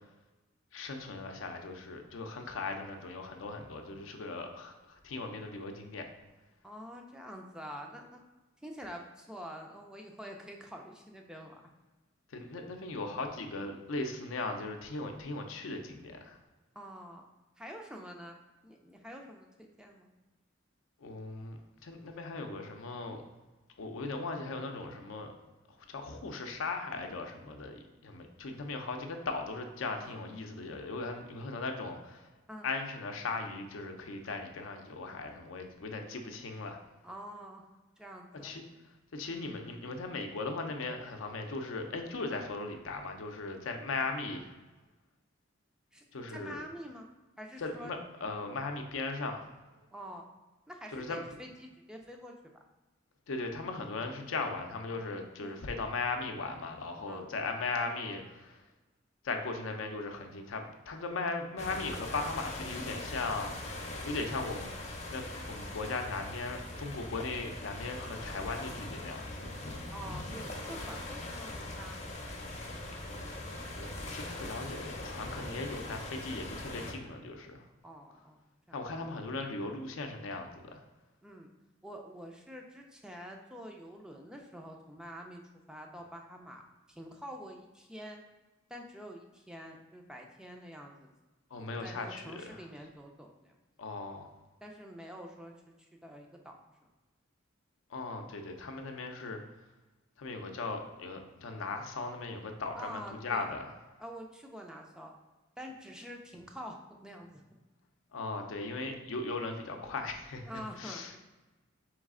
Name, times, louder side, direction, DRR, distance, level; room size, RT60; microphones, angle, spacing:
voice 1, 0.7-6.1 12.3-16.4 21.0-23.2 23.8-25.3 25.9-32.3 32.6-36.8 38.4-38.6 39.1-44.5 46.1-46.6 47.6-49.4 50.9-51.3 53.3-58.6 59.2-64.7 65.1-69.5 73.1-77.7 78.7-80.8 91.5-92.6 93.8-94.3 97.9-99.4 100.2-103.7 108.1-110.5 110.8-111.1, left 3 dB, 80° left, 4 dB, 0.5 m, -38 dB
voice 2, 6.6-8.2 8.6-11.7 16.8-17.3 17.6-18.4 18.6-20.1 30.0-30.2 32.5-32.7 37.0-37.6 38.0-38.5 45.9-47.1 47.4-47.9 49.9-50.3 50.7-52.3 55.4-55.6 57.1-57.3 69.9-72.1 77.8-78.4 78.7-78.8 81.2-81.5 81.8-85.4 85.7-86.6 86.9-88.2 88.7-91.1 91.6-93.6 94.6-96.5 96.8-96.9 102.7-103.5 104.0-105.1 105.6-107.4 110.5-111.2, equal, 5° right, 1 dB, 0.4 m, -47 dB
sound 1, 61.6-76.9, left 2 dB, 35° left, 0.6 m, -41 dB
4.0 x 3.1 x 3.6 m, 1.1 s
head